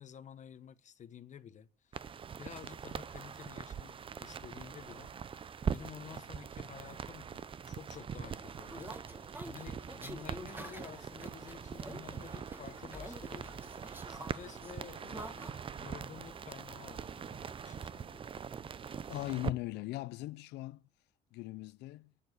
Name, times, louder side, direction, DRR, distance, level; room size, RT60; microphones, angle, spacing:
voice 1, 0.0-2.0 2.4-5.1 5.7-18.4, left 8 dB, 45° left, 1.1 m, -51 dB
sound 1, 1.9-19.5, right 7 dB, 30° right, 0.6 m, -42 dB
sound 2, 8.1-15.5, right 1 dB, 10° right, 1.8 m, -49 dB
sound 3, 11.8-14.5 15.3-16.3, left 4 dB, 25° left, 2.2 m, -59 dB
voice 2, 19.1-20.8 21.3-22.1, left 17 dB, 85° left, 0.6 m, -39 dB
19.0 x 7.1 x 8.1 m
cardioid pair, 110°, 17 cm